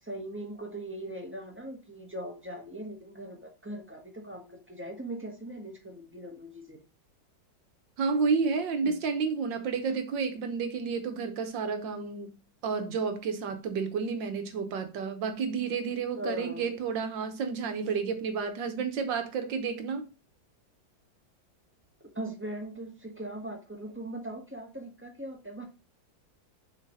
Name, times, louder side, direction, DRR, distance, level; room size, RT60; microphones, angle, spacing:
voice 1, 0.0-6.8 8.8-9.0 16.1-16.7 22.1-25.7, right 1 dB, 5° right, 1.4 m, -40 dB
voice 2, 8.0-12.4 12.6-20.0, right 5 dB, 75° right, 1.7 m, -31 dB
6.5 x 4.4 x 5.5 m
omnidirectional pair, 2.0 m